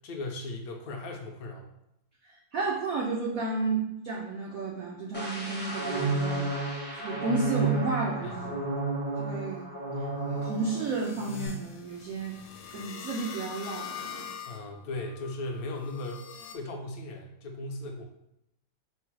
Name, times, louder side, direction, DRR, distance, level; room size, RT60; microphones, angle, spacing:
voice 1, 0.0-1.7 8.2-8.6 14.5-16.3 16.5-18.0, left 2 dB, 65° left, 2 dB, 0.9 m, -37 dB
voice 2, 2.3-6.4 7.0-8.5 9.2-9.7 10.3-12.4 12.7-14.3, right 4 dB, 85° right, -2 dB, 0.7 m, -32 dB
sound 1, 5.1-10.9 11.2-11.5, right 2 dB, 10° left, 0.4 m, -31 dB
sound 2, 9.0-16.5, left 8 dB, 85° left, 1.3 m, -45 dB
4.6 x 2.0 x 4.6 m, 0.84 s
omnidirectional pair, 2.1 m